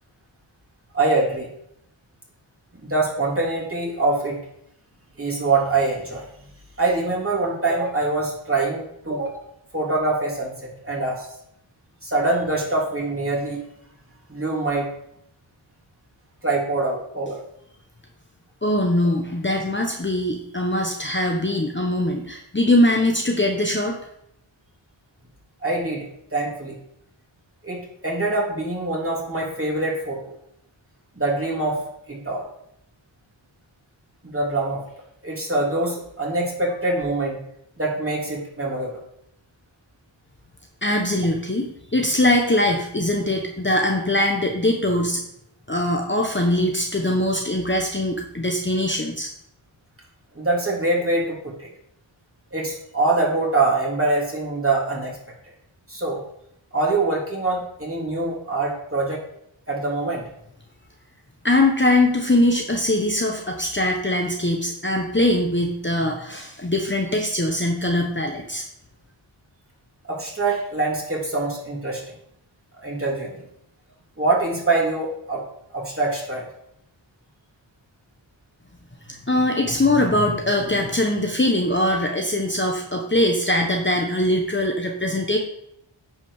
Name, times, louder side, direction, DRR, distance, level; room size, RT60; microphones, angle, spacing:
voice 1, 0.9-1.5 2.8-4.4 5.2-6.2 6.8-9.4 9.7-10.5 10.8-11.3 12.0-13.6 14.3-14.9 16.4-17.4 25.6-26.8 27.6-30.3 31.2-31.8 32.1-32.5 34.2-34.8 35.2-37.4 37.8-38.9 50.3-51.7 52.5-55.2 55.9-56.2 56.7-59.2 59.7-60.2 70.1-72.1 72.8-73.4 74.2-75.4 75.7-76.4, right 2 dB, 25° right, -4 dB, 3.2 m, -24 dB
voice 2, 18.6-23.9 40.8-45.2 45.7-49.3 61.4-68.6 79.1-85.4, left 1 dB, 25° left, 1 dB, 1.1 m, -22 dB
9.8 x 5.0 x 5.0 m, 0.75 s
wide cardioid pair, 55°, 47 cm